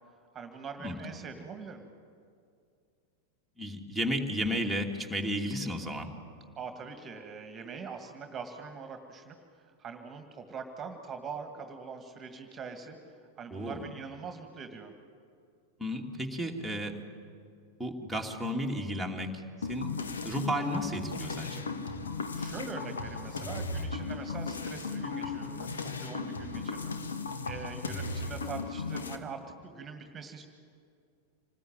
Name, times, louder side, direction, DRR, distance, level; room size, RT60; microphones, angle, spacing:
voice 1, 0.3-1.8 6.6-9.4 9.6-14.9 22.3-27.0 27.4-30.4, right 5 dB, 20° right, 6 dB, 2.1 m, -43 dB
voice 2, 3.6-6.1 13.5-13.8 15.8-16.9 17.8-19.3 19.7-19.9 20.2-21.7, equal, ahead, 4 dB, 2.7 m, -33 dB
sound 1, 19.6-29.2, left 4 dB, 70° left, 1.8 m, -36 dB
27.0 x 20.0 x 9.0 m, 2.4 s
figure-of-eight pair, 90°, 0 cm